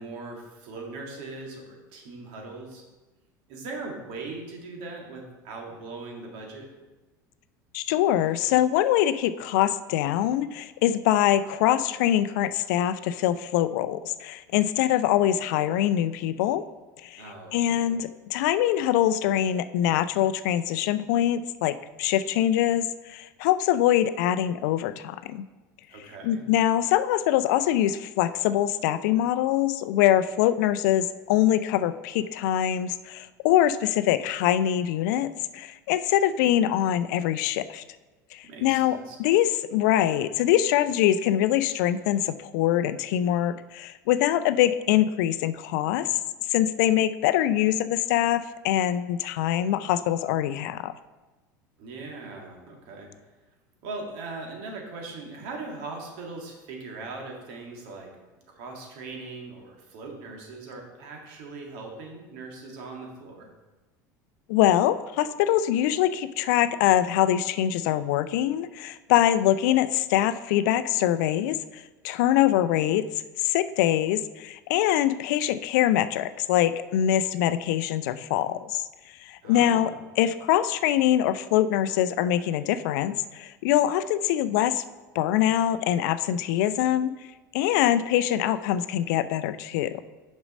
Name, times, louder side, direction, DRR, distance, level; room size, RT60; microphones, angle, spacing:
voice 1, 0.0-2.8 3.5-6.7 17.2-17.9 25.9-26.5 38.5-39.2 51.8-53.1 53.8-58.1 58.5-63.5 79.4-80.0, right 3 dB, 60° right, 1 dB, 2.0 m, -40 dB
voice 2, 7.7-16.6 17.0-17.2 17.5-25.5 26.2-37.8 38.3-46.1 46.5-50.9 64.5-73.0 73.4-78.8 79.2-79.9 80.2-84.8 85.1-87.1 87.5-90.0, left 12 dB, 65° left, 13 dB, 0.4 m, -24 dB
6.9 x 5.3 x 5.2 m, 1.1 s
hypercardioid pair, 80°, 10 cm